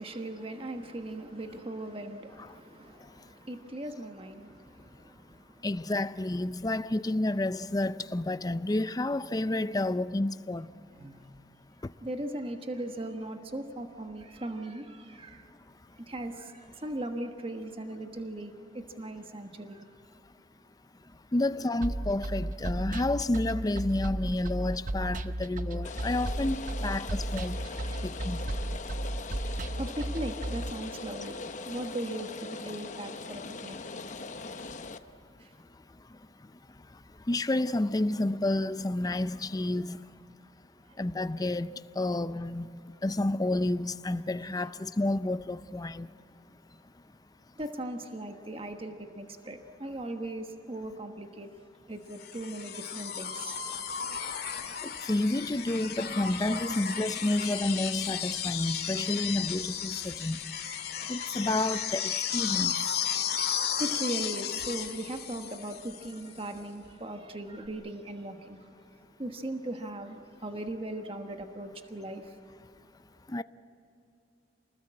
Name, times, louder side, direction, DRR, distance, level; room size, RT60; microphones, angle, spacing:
voice 1, 0.0-5.7 10.9-11.2 12.0-15.5 16.0-19.9 27.5-28.2 29.4-33.8 35.4-35.5 40.8-41.0 47.6-51.5 51.9-53.6 54.0-54.1 62.0-62.4 63.8-68.7 69.2-72.4, right 1 dB, 30° right, 1.3 m, -39 dB
voice 2, 5.6-10.7 21.3-27.6 28.0-28.4 37.3-40.0 41.0-46.1 54.8-60.4 61.1-62.9 73.3-73.4, left 2 dB, 20° left, 0.5 m, -30 dB
sound 1, 21.8-30.7, right 1 dB, 45° right, 0.8 m, -34 dB
Rain, 25.8-35.0, left 3 dB, 45° left, 0.9 m, -41 dB
sound 2, 52.2-66.2 67.7-67.8, left 8 dB, 60° left, 2.1 m, -34 dB
28.5 x 20.0 x 8.7 m
head